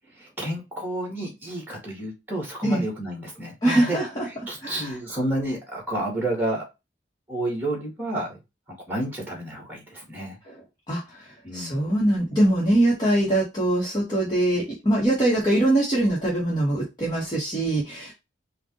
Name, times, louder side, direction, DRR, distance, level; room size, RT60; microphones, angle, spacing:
voice 1, 0.2-4.0 4.3-6.6 7.3-8.4 8.9-10.4 11.4-11.9, right 1 dB, 10° right, 0 dB, 2.3 m, -30 dB
voice 2, 3.6-4.3 4.6-4.9 10.5-18.1, right 1 dB, 25° left, -7 dB, 1.5 m, -23 dB
5.1 x 2.6 x 3.1 m, 0.24 s
head